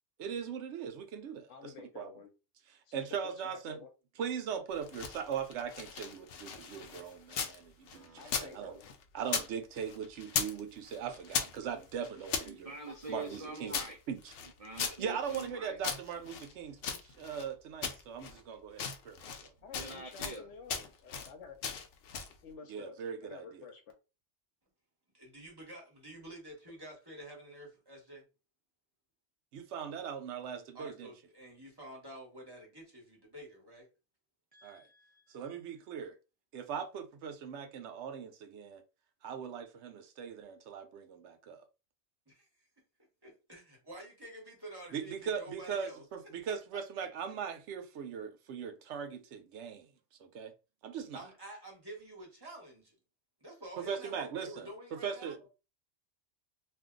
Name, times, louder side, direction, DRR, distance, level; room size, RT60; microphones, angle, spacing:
voice 1, 0.2-2.1 2.9-3.8 4.2-8.8 9.1-12.7 13.1-14.3 15.0-19.5 22.7-23.6 29.5-31.1 34.6-34.9 35.3-36.1 36.5-38.8 39.2-41.6 44.9-49.9 50.2-50.5 50.8-51.2 53.8-55.5, right 7 dB, 75° right, 0.9 m, -40 dB
voice 2, 1.5-2.3 2.9-3.9 8.1-8.9 19.6-21.6 22.4-23.8, left 5 dB, 90° left, 1.0 m, -51 dB
sound 1, 4.7-7.6 7.9-9.5 9.8-10.6 10.9-12.5 13.0-15.5 15.8-17.5 17.8-18.4 18.7-19.5 19.7-20.4 20.7-21.3 21.6-22.4, left 6 dB, 65° left, 0.7 m, -38 dB
voice 3, 7.9-8.4 11.6-11.7 12.4-14.0 14.6-15.8 19.7-20.5 34.5-35.4, right 3 dB, 55° right, 0.4 m, -46 dB
voice 4, 25.1-28.2 30.7-33.9 42.3-42.5 43.2-46.1 46.7-47.1 51.1-52.9 53.4-55.5, right 1 dB, 20° right, 1.1 m, -49 dB
2.5 x 2.2 x 3.7 m
omnidirectional pair, 1.2 m